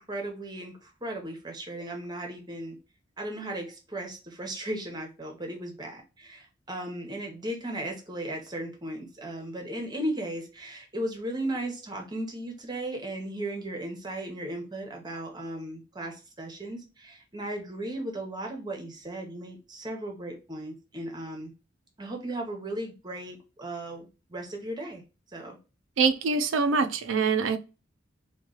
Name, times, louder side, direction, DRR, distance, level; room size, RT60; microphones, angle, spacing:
voice 1, 0.0-2.8 3.2-21.5 22.0-25.0 25.3-25.6, right 1 dB, 20° right, 0.8 m, -36 dB
voice 2, 26.0-27.6, right 5 dB, 85° right, 0.5 m, -24 dB
3.0 x 2.3 x 3.7 m
head